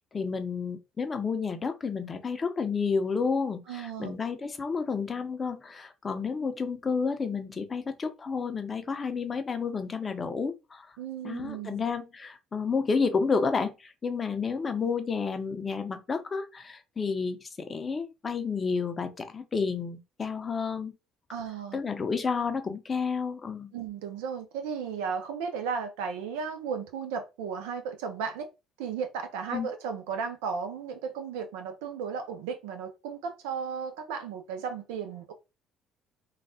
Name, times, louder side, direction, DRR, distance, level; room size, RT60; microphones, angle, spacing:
voice 1, 0.0-10.9 11.2-20.9 21.7-23.7 29.5-29.7, left 5 dB, 30° left, 0.6 m, -30 dB
voice 2, 3.7-4.1 11.0-11.8 21.3-21.8 23.7-28.5 28.8-35.3, right 6 dB, 70° right, 0.6 m, -35 dB
3.2 x 2.3 x 2.7 m
figure-of-eight pair, 55°, 0 cm